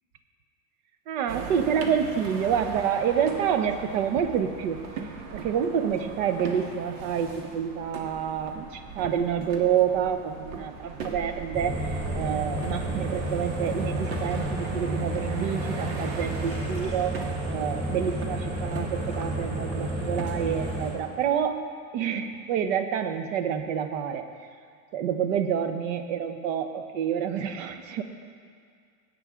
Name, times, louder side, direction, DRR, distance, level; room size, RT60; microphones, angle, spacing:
voice 1, 1.1-4.8 5.3-21.7 21.9-24.3 24.9-28.0, right 8 dB, 60° right, 8 dB, 0.9 m, -28 dB
sound 1, 1.3-20.4, right 4 dB, 85° right, 1.6 m, -40 dB
sound 2, 11.5-20.9, right 1 dB, 15° right, 3.0 m, -31 dB
17.0 x 8.7 x 3.7 m, 2.1 s
supercardioid pair, 170°, 43 cm